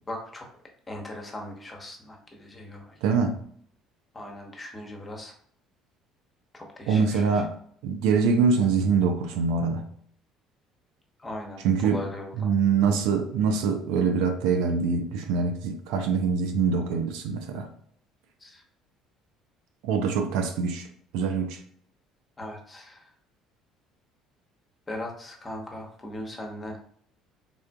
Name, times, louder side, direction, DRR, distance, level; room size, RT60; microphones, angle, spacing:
voice 1, 0.1-0.5 0.9-3.0 4.1-5.3 6.5-7.4 11.2-12.5 18.4-18.6 22.4-23.1 24.9-26.8, left 1 dB, 25° left, 1 dB, 0.9 m, -39 dB
voice 2, 3.0-3.4 6.9-7.5 7.8-9.9 11.6-12.0 12.4-17.7 19.8-20.9 21.1-21.6, right 5 dB, 70° right, 5 dB, 0.4 m, -24 dB
3.5 x 2.4 x 2.2 m, 0.62 s
hypercardioid pair, 60°, 0 cm